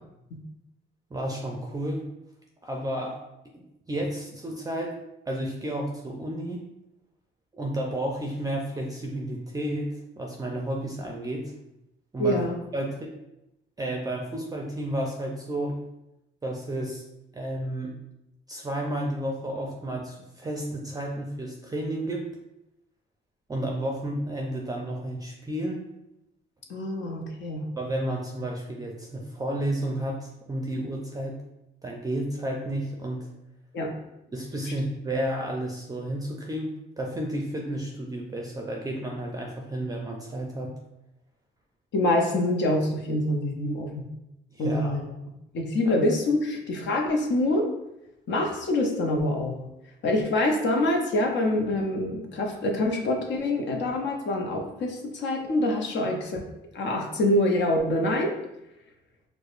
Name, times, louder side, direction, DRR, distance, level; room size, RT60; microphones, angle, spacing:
voice 1, 1.1-2.0 2.6-3.2 3.5-4.9 5.3-6.6 7.5-11.5 12.1-12.4 12.7-13.1 13.8-15.8 16.4-17.0 17.3-17.9 18.5-22.2 23.5-25.8 27.8-31.3 31.8-33.3 34.3-40.7 44.5-45.0, right 1 dB, 20° right, 0 dB, 0.4 m, -31 dB
voice 2, 12.2-12.6 26.7-27.7 33.7-33.9 41.9-43.9 44.6-45.1 45.5-47.7 48.3-49.6 50.0-56.4 56.7-58.3, left 1 dB, 65° left, 2 dB, 0.7 m, -25 dB
4.7 x 2.1 x 2.5 m, 0.87 s
cardioid pair, 90°, 20 cm